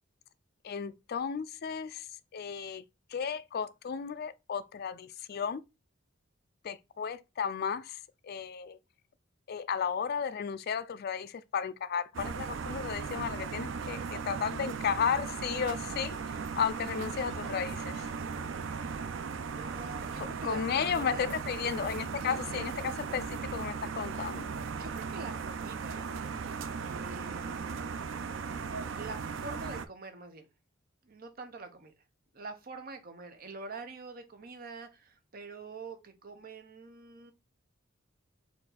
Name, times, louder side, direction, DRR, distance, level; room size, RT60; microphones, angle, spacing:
voice 1, 0.6-2.1 2.3-2.8 3.1-5.6 6.6-8.8 9.5-16.2 16.6-18.1 20.2-24.5, left 7 dB, 50° left, 0.4 m, -34 dB
sound 1, 12.1-29.9, right 5 dB, 65° right, 0.4 m, -37 dB
voice 2, 19.5-21.4 22.3-22.6 24.7-26.1 26.8-27.9 28.9-30.5 31.0-31.9 32.3-37.3, right 3 dB, 50° right, 0.8 m, -45 dB
4.5 x 2.6 x 4.0 m
head